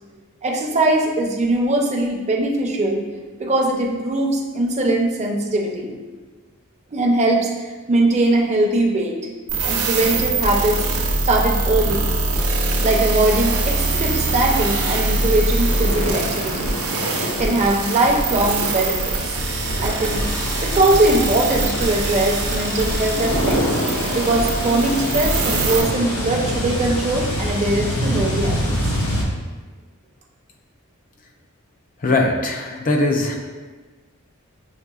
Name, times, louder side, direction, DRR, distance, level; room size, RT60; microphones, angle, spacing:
voice 1, 0.4-3.0 3.4-5.9 6.9-7.5 7.9-9.2 9.6-10.8 11.3-12.1 12.8-16.8 17.4-19.4 19.8-20.3 20.6-23.6 24.1-28.7, right 2 dB, 30° right, 0 dB, 0.6 m, -21 dB
sound 1, 9.5-25.8, right 2 dB, 80° right, 0.7 m, -23 dB
sound 2, 13.6-29.2, equal, 80° left, 1.0 m, -26 dB
voice 2, 32.0-33.4, left 2 dB, 40° left, 2 dB, 0.5 m, -20 dB
6.5 x 3.3 x 2.3 m, 1.3 s
head